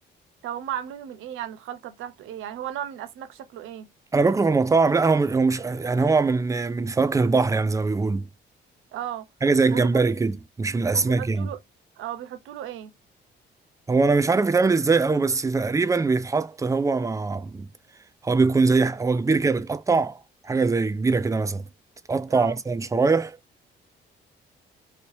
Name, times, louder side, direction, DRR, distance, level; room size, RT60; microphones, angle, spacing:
voice 1, 0.4-3.9 8.9-9.3 9.7-9.9 10.9-11.6 12.0-12.9 22.3-22.6, right 11 dB, 85° right, 0.7 m, -35 dB
voice 2, 4.1-8.3 9.4-11.5 13.9-17.7 18.2-21.6 22.1-23.4, right 4 dB, 15° right, 0.4 m, -22 dB
3.0 x 2.8 x 3.1 m
cardioid pair, 90°, 20 cm